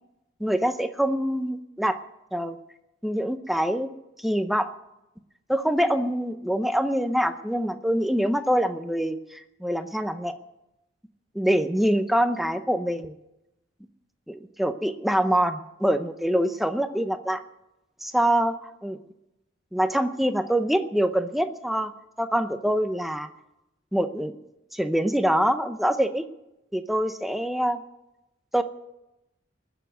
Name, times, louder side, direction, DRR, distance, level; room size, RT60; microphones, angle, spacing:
voice 1, 0.4-2.0 2.3-2.6 3.0-3.9 4.2-4.7 5.5-10.3 11.3-13.1 14.3-17.4 18.0-19.0 19.7-21.9 22.2-23.3 23.9-24.3 24.7-26.2 26.7-27.8 28.5-28.6, equal, ahead, 9 dB, 0.6 m, -25 dB
20.0 x 7.1 x 9.2 m, 0.92 s
head